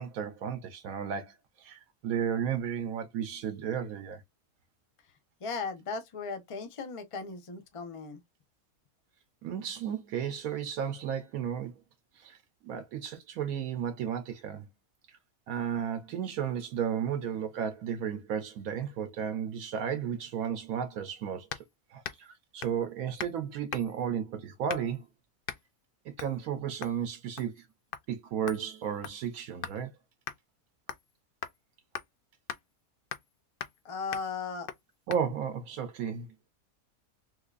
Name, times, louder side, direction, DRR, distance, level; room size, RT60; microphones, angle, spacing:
voice 1, 0.0-1.3 1.6-4.2 9.4-11.7 12.2-12.4 12.6-14.7 15.5-21.5 21.9-25.0 26.1-27.7 28.1-29.9 35.1-36.3, right 8 dB, 80° right, 1.1 m, -33 dB
voice 2, 5.4-8.2 33.8-34.7, left 5 dB, 30° left, 0.6 m, -37 dB
sound 1, 21.5-21.7 22.0-22.3 22.6-22.8 23.2-23.4 23.7-24.1 24.7-25.0 25.5-25.6 26.2-26.4 26.8-27.0 27.4-27.6 27.9-28.1 28.5-29.8 30.3-30.4 30.9-31.1 31.4-31.6 31.9-32.1 32.5-32.6 33.1-33.3 33.6-33.8 34.1-34.3 34.7-34.8 35.1-35.2, left 8 dB, 75° left, 0.5 m, -40 dB
3.8 x 3.0 x 2.3 m
omnidirectional pair, 1.5 m